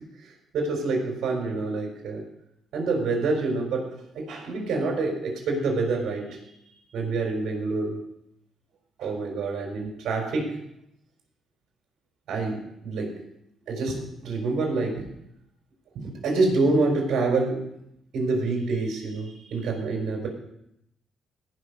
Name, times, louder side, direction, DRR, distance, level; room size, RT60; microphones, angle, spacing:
voice 1, 0.5-2.2 2.7-6.4 6.9-8.0 9.0-10.6 12.3-13.2 13.7-15.1 15.9-17.6 18.1-20.3, right 3 dB, 70° right, 1 dB, 4.1 m, -27 dB
17.0 x 5.8 x 5.3 m, 0.79 s
cardioid pair, 90°, 0 cm